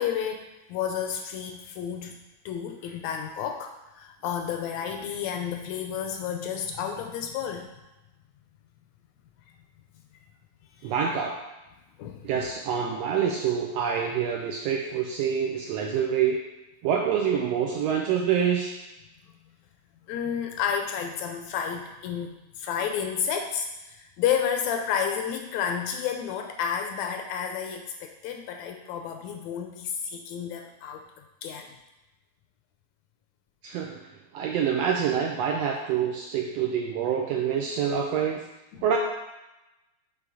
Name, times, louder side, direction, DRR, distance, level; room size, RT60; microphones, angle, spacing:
voice 1, 0.0-2.1 2.4-7.7 10.8-10.9 12.0-12.3 20.1-31.0 31.4-31.8 38.7-38.8, left 8 dB, 80° left, 4 dB, 1.7 m, -31 dB
voice 2, 10.8-11.4 12.2-16.4 16.8-18.8 33.6-34.0 34.3-38.4 38.8-39.0, right 7 dB, 80° right, 0 dB, 1.5 m, -26 dB
6.9 x 3.4 x 4.8 m, 0.98 s
omnidirectional pair, 3.4 m